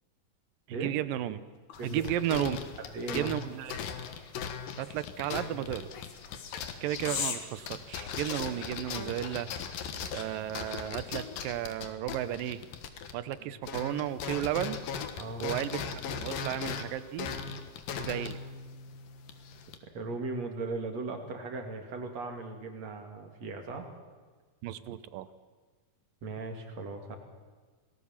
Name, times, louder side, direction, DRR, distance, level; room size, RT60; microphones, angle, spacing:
voice 1, 0.7-1.4 1.8-2.6 3.1-3.8 4.8-5.9 6.8-9.5 10.1-12.7 13.1-14.8 15.4-17.4 18.0-18.4 24.6-25.3, right 12 dB, 85° right, 14 dB, 2.6 m, -33 dB
sound 1, 1.0-8.5, left 7 dB, 60° left, 3.1 m, -43 dB
sound 2, 1.7-13.4 13.6-19.8, left 6 dB, 80° left, 3.2 m, -39 dB
voice 2, 1.8-2.1 2.9-3.3 13.5-13.6 15.2-15.5 19.8-23.9 26.2-27.2, right 3 dB, 50° right, 4 dB, 3.5 m, -38 dB
27.0 x 18.5 x 7.3 m, 1.4 s
omnidirectional pair, 3.9 m